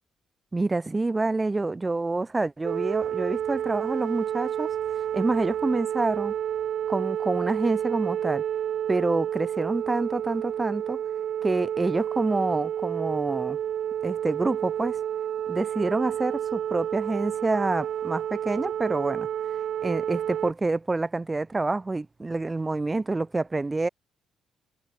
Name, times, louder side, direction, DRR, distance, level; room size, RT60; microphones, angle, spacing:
voice 1, 0.5-4.7 5.1-6.3 6.9-8.4 8.9-11.0 11.4-13.6 14.0-15.0 15.5-19.3 19.8-23.9, right 3 dB, 20° right, 0.5 m, -27 dB
sound 1, 2.6-20.5, right 10 dB, 65° right, 1.4 m, -30 dB
cardioid pair, 90°, 0 cm